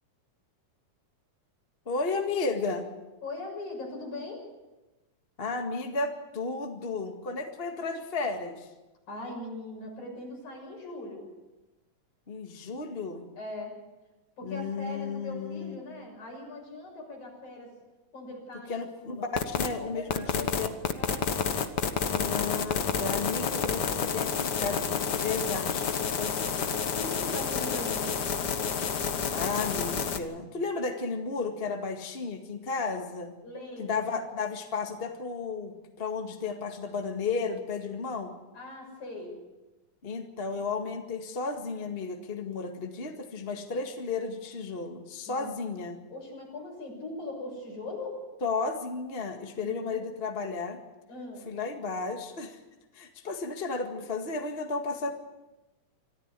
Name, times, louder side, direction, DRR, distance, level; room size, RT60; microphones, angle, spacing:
voice 1, 1.8-2.9 5.4-8.7 12.3-13.3 14.4-15.8 18.7-20.7 22.1-26.6 29.3-33.4 33.8-38.3 40.0-46.0 48.4-50.8 51.4-52.6 52.9-55.1, left 4 dB, 25° left, 4 dB, 1.6 m, -33 dB
voice 2, 3.2-4.4 9.1-11.3 13.4-13.7 14.4-17.7 18.1-19.3 19.6-20.5 21.0-21.3 27.0-28.2 33.4-34.2 38.5-39.4 45.3-45.7 46.1-48.2 49.6-50.1 51.1-51.5, left 2 dB, 70° left, 0 dB, 8.0 m, -40 dB
sound 1, 19.4-19.7 20.1-30.2, left 6 dB, 55° left, 1.2 m, -29 dB
25.5 x 14.0 x 8.3 m, 1.1 s
omnidirectional pair, 3.5 m